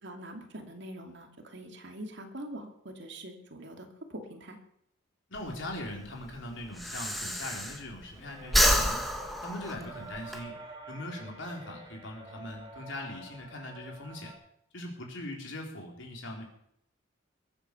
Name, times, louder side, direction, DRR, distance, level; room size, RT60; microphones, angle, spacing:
voice 1, 0.0-4.6, right 1 dB, 55° right, 4 dB, 2.6 m, -44 dB
voice 2, 5.3-9.1 9.4-10.6 10.9-14.3 14.7-16.4, left 1 dB, 60° left, 1 dB, 4.5 m, -40 dB
Breathing, 5.3-8.1 8.4-10.4, equal, ahead, 1.5 m, -28 dB
sound 1, 8.1-14.3, right 2 dB, 20° right, 3.6 m, -48 dB
21.5 x 9.0 x 7.1 m, 0.74 s
head